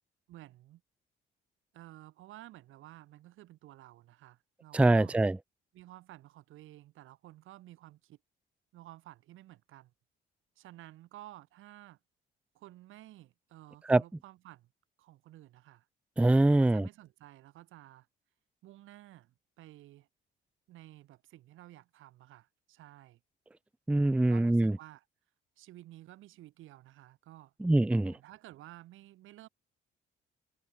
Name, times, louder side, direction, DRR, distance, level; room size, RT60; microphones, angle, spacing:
voice 1, 0.3-0.8 1.7-5.2 5.7-8.2 8.7-9.9 10.6-12.0 12.5-14.7 15.0-15.9 16.5-18.1 18.6-20.1 20.7-23.2 24.3-25.0 25.6-27.5 28.0-29.5, right 15 dB, 90° right, 7.3 m, -53 dB
voice 2, 4.7-5.4 13.9-14.0 16.2-16.9 23.9-24.7 27.6-28.2, right 2 dB, 5° right, 0.4 m, -24 dB
cardioid pair, 90°, 20 cm